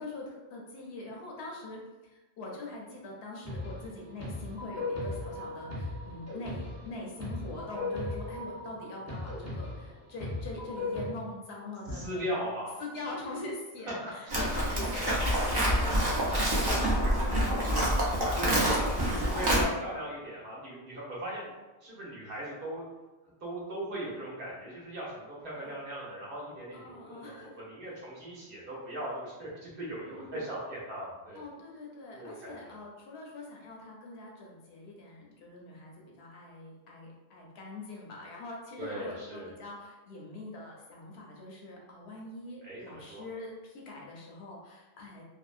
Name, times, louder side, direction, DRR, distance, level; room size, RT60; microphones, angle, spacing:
voice 1, 0.0-12.4 12.8-16.9 17.2-18.4 18.7-19.3 25.5-25.7 26.7-27.5 30.0-30.4 31.3-45.2, left 2 dB, 75° left, -2 dB, 0.9 m, -43 dB
sound 1, 3.4-11.1, left 2 dB, 20° left, 0.5 m, -37 dB
voice 2, 11.9-12.8 13.9-14.0 14.2-14.4 18.3-21.5 21.8-22.8 23.4-31.4 32.1-32.8 38.8-39.5 42.6-43.2, right 1 dB, 60° right, -6 dB, 1.0 m, -38 dB
Livestock farm animals working animals, 14.3-19.6, equal, 35° right, 0.4 m, -27 dB
2.6 x 2.0 x 2.4 m, 1.1 s
omnidirectional pair, 1.1 m